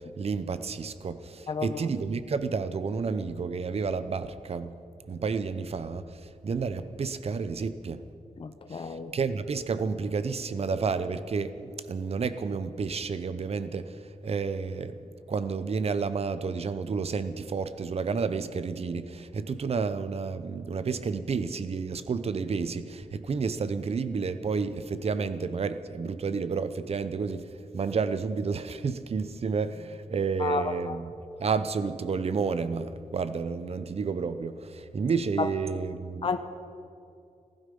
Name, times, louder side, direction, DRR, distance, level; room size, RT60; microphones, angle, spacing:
voice 1, 0.2-4.7 5.1-8.0 8.7-31.1 31.4-36.3, right 5 dB, 50° right, 12 dB, 0.7 m, -31 dB
voice 2, 1.5-1.8 8.4-9.1 30.4-31.0 35.4-35.5 36.2-36.4, left 5 dB, 40° left, 8 dB, 0.8 m, -31 dB
16.0 x 15.0 x 5.4 m, 2.4 s
wide cardioid pair, 140°, 14 cm